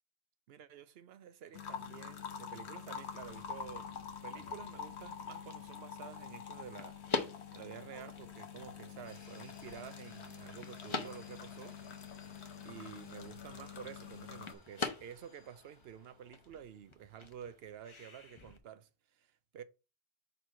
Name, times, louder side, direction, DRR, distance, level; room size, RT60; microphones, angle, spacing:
voice 1, 0.5-3.9 4.2-11.8 12.6-19.6, right 9 dB, 70° right, 0.8 m, -50 dB
sound 1, 1.5-14.5, left 7 dB, 80° left, 1.2 m, -47 dB
sound 2, 3.2-18.6, left 4 dB, 30° left, 0.8 m, -46 dB
sound 3, 9.0-16.5, left 3 dB, 50° left, 1.7 m, -61 dB
4.6 x 4.3 x 5.6 m
omnidirectional pair, 1.1 m